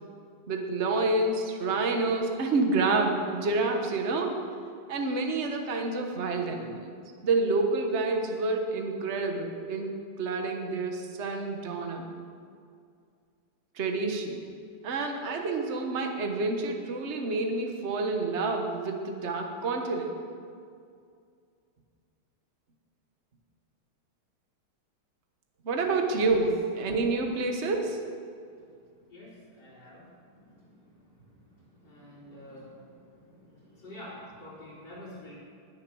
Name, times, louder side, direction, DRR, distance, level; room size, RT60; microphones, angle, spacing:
voice 1, 0.5-4.5 4.9-6.9 7.2-12.1 13.7-14.4 14.8-20.2 25.6-28.0, right 3 dB, 40° right, 3 dB, 1.3 m, -28 dB
voice 2, 29.5-30.0 31.8-32.8 33.8-35.3, left 1 dB, 60° left, -8 dB, 4.3 m, -46 dB
20.0 x 6.7 x 6.2 m, 2.3 s
omnidirectional pair, 2.2 m